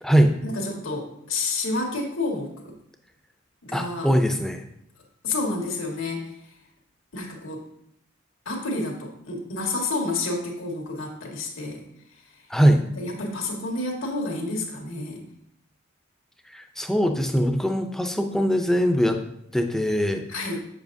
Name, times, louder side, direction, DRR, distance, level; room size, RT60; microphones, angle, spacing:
voice 1, 0.4-2.7 3.6-4.1 5.2-6.3 7.1-7.6 8.4-11.8 12.9-15.2 20.3-20.6, left 2 dB, 80° left, 0 dB, 1.7 m, -29 dB
voice 2, 3.7-4.6 12.5-12.8 16.5-19.2 19.5-20.2, equal, ahead, 5 dB, 0.4 m, -21 dB
7.6 x 7.2 x 2.6 m, 0.75 s
head